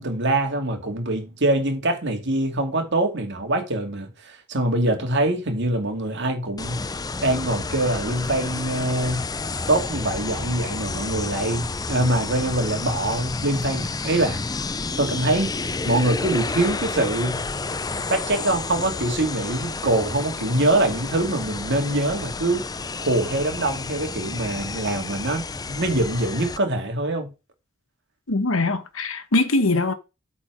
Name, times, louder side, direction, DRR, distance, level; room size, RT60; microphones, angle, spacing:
voice 1, 0.0-6.8 7.2-9.3 9.7-14.4 15.0-17.4 18.1-22.6 23.0-27.3, right 1 dB, 60° right, 2.4 m, -24 dB
sound 1, 6.6-26.6, left 3 dB, 20° left, 0.5 m, -30 dB
voice 2, 28.3-29.9, left 2 dB, 75° left, 1.3 m, -22 dB
8.5 x 4.3 x 6.2 m
head